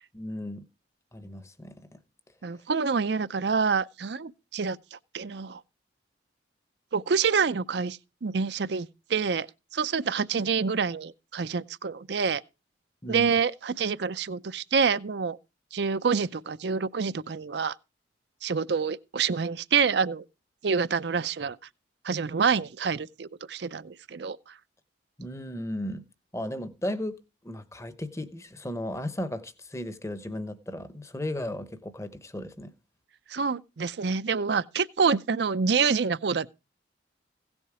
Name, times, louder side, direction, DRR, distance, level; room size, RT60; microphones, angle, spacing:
voice 1, 0.1-0.7 1.1-2.0 13.0-13.3 25.2-26.0 26.3-27.2 27.4-32.7, left 1 dB, 15° left, 0.9 m, -35 dB
voice 2, 2.4-5.6 6.9-9.5 9.7-12.4 13.1-15.4 15.7-17.7 18.4-20.2 20.6-21.6 22.0-24.5 33.3-36.5, right 5 dB, 60° right, 0.5 m, -27 dB
16.5 x 7.1 x 4.9 m
head